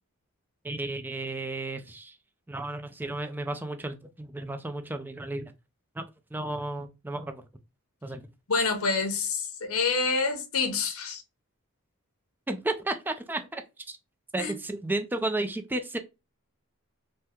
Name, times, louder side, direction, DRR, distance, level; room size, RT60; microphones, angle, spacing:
voice 1, 0.6-2.1 2.5-5.5 6.0-6.1 6.3-7.4 8.0-8.3 12.5-13.6 13.9-14.0 14.3-16.0, right 2 dB, 10° right, 0.3 m, -33 dB
voice 2, 8.5-11.2 14.4-14.5, left 4 dB, 80° left, 0.8 m, -27 dB
3.5 x 2.1 x 2.8 m
head